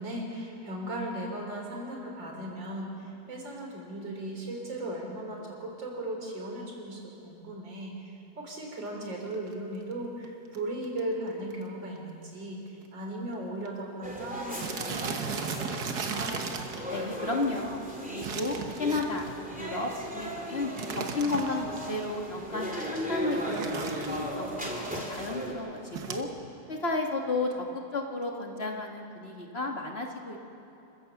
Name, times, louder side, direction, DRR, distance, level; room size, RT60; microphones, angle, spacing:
voice 1, 0.0-16.4, right 1 dB, 85° right, 0 dB, 4.3 m, -37 dB
sound 1, 9.3-9.6 10.2-10.3 10.5-10.6 10.8-11.1 11.5-11.6 12.0-12.1 12.8-12.9 13.1-13.3 13.7-13.8 14.6-16.9 18.2-19.4 20.8-21.8 23.3-24.4 25.9-26.2, right 6 dB, 60° right, 1.7 m, -36 dB
sound 2, 14.0-25.5, equal, 5° right, 3.0 m, -37 dB
voice 2, 16.9-17.8 18.1-19.3 19.5-26.3 26.7-27.6 27.9-30.4, left 3 dB, 35° left, 1 dB, 1.7 m, -33 dB
27.0 x 15.5 x 7.1 m, 2.9 s
omnidirectional pair, 2.0 m